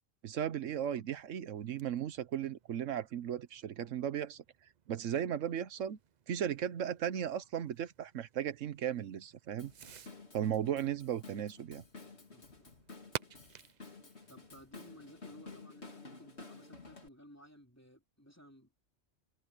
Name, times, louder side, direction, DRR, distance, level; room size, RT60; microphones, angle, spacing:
voice 1, 0.2-4.4 4.9-6.0 6.3-9.7 10.3-11.8, right 9 dB, 80° right, 1.2 m, -36 dB
Fireworks, 1.1-15.7, right 8 dB, 50° right, 0.6 m, -53 dB
Drum kit / Drum, 9.6-17.1, left 3 dB, 60° left, 3.2 m, -53 dB
voice 2, 12.1-12.7 14.3-18.8, equal, 10° left, 3.2 m, -57 dB
omnidirectional pair, 1.3 m